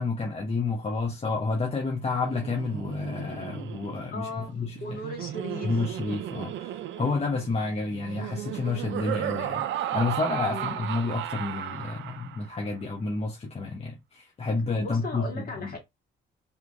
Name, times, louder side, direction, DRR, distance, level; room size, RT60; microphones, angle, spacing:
voice 1, 0.0-4.8 5.6-9.6 9.9-15.7, left 3 dB, 30° left, 0.9 m, -30 dB
Laughter, 2.1-12.6, right 11 dB, 70° right, 0.5 m, -35 dB
voice 2, 4.1-4.5 4.8-5.8 10.5-10.9 14.8-15.8, left 2 dB, 50° left, 2.0 m, -37 dB
3.7 x 2.9 x 2.6 m
cardioid pair, 90°, 20 cm